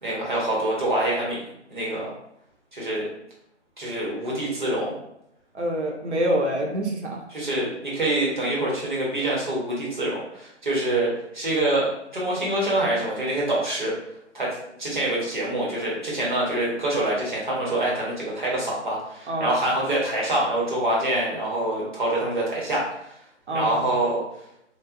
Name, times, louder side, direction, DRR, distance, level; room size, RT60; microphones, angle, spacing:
voice 1, 0.0-1.4 1.7-2.1 2.7-3.1 3.8-4.9 7.3-13.9 14.3-23.2 23.5-24.2, right 1 dB, 40° right, -5 dB, 0.8 m, -25 dB
voice 2, 5.5-7.2 19.3-19.5 23.5-23.9, right 1 dB, 70° right, 0 dB, 0.8 m, -26 dB
2.8 x 2.0 x 2.4 m, 0.79 s
hypercardioid pair, 175°, 36 cm